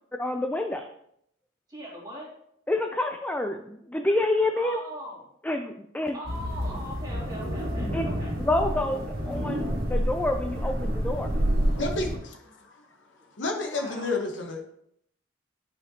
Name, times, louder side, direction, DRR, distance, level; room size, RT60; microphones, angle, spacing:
voice 1, 0.2-0.8 2.7-4.8 5.4-6.2 7.9-8.0 8.5-11.3, left 2 dB, 10° left, 5 dB, 0.3 m, -28 dB
voice 2, 1.7-2.3 4.6-5.3 6.1-8.3 13.7-14.1, equal, 20° right, -4 dB, 2.3 m, -40 dB
sound 1, 6.2-12.2, equal, 50° right, 1.9 m, -29 dB
voice 3, 11.6-12.8 13.4-14.6, left 3 dB, 70° left, 2 dB, 1.1 m, -31 dB
9.8 x 5.0 x 2.8 m, 0.72 s
head